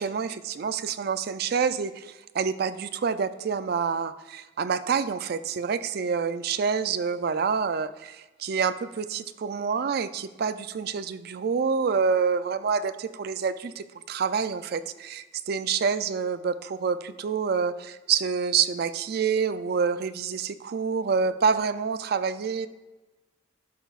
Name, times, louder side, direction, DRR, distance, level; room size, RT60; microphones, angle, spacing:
voice 1, 0.0-22.7, right 6 dB, 55° right, 13 dB, 0.4 m, -27 dB
11.0 x 5.6 x 2.4 m, 1.1 s
head